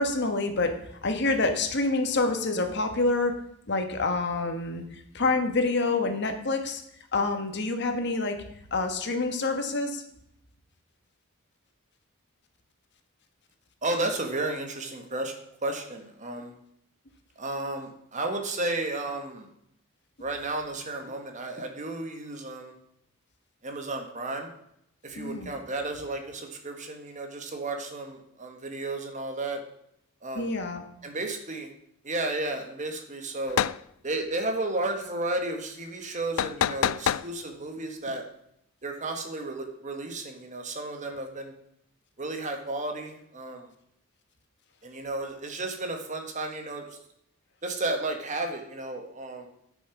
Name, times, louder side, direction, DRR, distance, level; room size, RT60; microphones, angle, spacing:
voice 1, 0.0-3.3 3.7-4.8 5.1-6.8 7.1-8.4 8.7-10.0 25.2-25.5 30.3-30.8, left 3 dB, 55° left, 6 dB, 1.4 m, -27 dB
voice 2, 13.8-15.3 15.6-16.5 17.4-19.5 20.2-22.7 23.6-24.5 25.0-29.6 30.2-30.5 31.0-31.7 32.0-33.7 34.0-38.2 38.8-41.5 42.2-43.6 44.8-46.9 47.6-49.5, right 2 dB, 35° right, 4 dB, 1.5 m, -33 dB
sound 1, 33.5-33.8 36.4-37.3, left 9 dB, 75° left, 0.3 m, -26 dB
11.0 x 6.3 x 6.0 m, 0.75 s
head